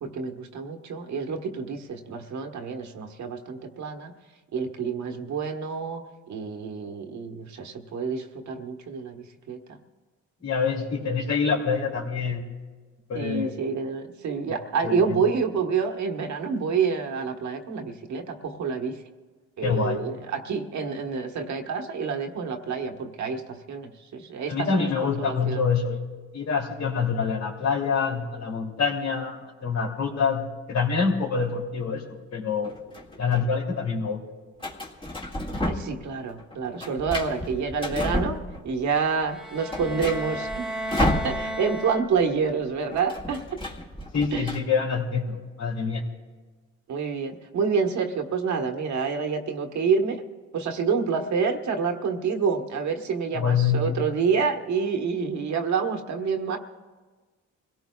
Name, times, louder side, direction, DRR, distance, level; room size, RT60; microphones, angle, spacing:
voice 1, 0.0-4.1 4.5-6.0 6.3-9.8 13.1-19.0 19.6-24.9 25.2-25.6 35.5-38.4 38.6-40.6 41.0-43.6 44.3-44.5 46.9-50.2 50.5-56.6, right 5 dB, 70° right, 4 dB, 1.4 m, -28 dB
voice 2, 10.4-12.4 13.1-13.5 14.8-15.2 19.6-20.0 24.5-26.0 26.3-32.0 32.3-32.7 33.2-34.2 44.1-46.0 53.3-53.9, left 5 dB, 60° left, -1 dB, 2.9 m, -26 dB
sound 1, 32.6-33.4 34.6-36.1 36.4-38.9 39.2-39.3 39.6-41.8 42.1-42.2 42.5-44.6, left 1 dB, 15° left, 2.0 m, -31 dB
sound 2, 39.2-42.5, right 1 dB, ahead, 1.2 m, -34 dB
26.0 x 17.5 x 2.4 m, 1.3 s
cardioid pair, 90°, 30 cm